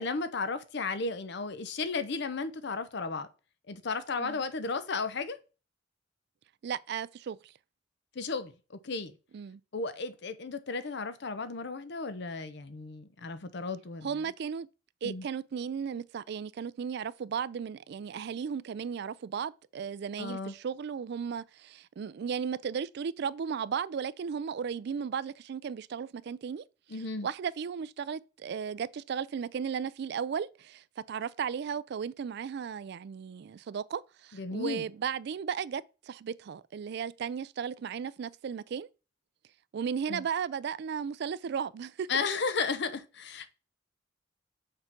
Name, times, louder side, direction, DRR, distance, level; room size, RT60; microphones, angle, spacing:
voice 1, 0.0-3.3 3.7-5.4 8.1-9.1 9.7-14.2 15.0-15.3 20.2-20.5 26.9-27.3 34.3-34.9 40.1-40.3 42.1-43.5, left 4 dB, 60° left, 0.7 m, -34 dB
voice 2, 6.6-7.5 9.3-9.6 14.0-14.7 15.0-26.6 27.2-38.9 39.7-42.3, right 7 dB, 60° right, 0.3 m, -35 dB
6.6 x 3.7 x 5.9 m
head